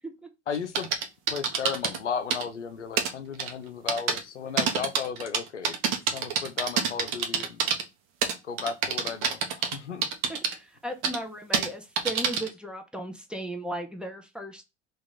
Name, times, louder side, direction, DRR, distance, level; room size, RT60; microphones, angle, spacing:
voice 1, 0.5-0.9 1.3-5.8 6.1-7.6 8.4-10.0, left 6 dB, 85° left, 0.5 m, -35 dB
sound 1, 0.5-2.0 2.3-2.4 3.0-3.1 3.4-3.5 3.9-4.2 4.6-7.8 8.2-9.7 10.0-10.5 11.0-11.2 11.5-11.7 12.0-12.5, right 6 dB, 55° right, 0.8 m, -26 dB
voice 2, 10.3-14.6, right 1 dB, 5° right, 0.6 m, -36 dB
2.9 x 2.5 x 3.8 m
figure-of-eight pair, 65°, 35 cm